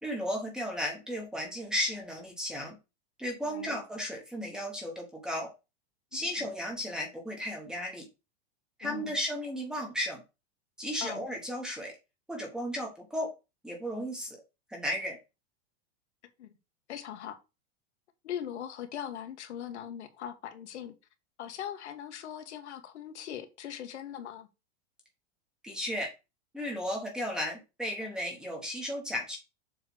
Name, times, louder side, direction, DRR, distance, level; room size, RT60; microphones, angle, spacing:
voice 1, 0.0-2.8 3.2-5.5 6.1-8.1 8.8-10.2 10.8-11.9 12.3-13.3 13.6-14.4 14.7-15.2 25.6-26.1 26.5-29.4, equal, ahead, 1.0 m, -34 dB
voice 2, 3.4-3.8 8.8-9.1 11.0-11.2 16.4-16.5 16.9-17.4 18.2-20.9 21.4-24.5, left 10 dB, 80° left, 1.6 m, -40 dB
7.1 x 3.3 x 6.1 m
supercardioid pair, 180°, 34 cm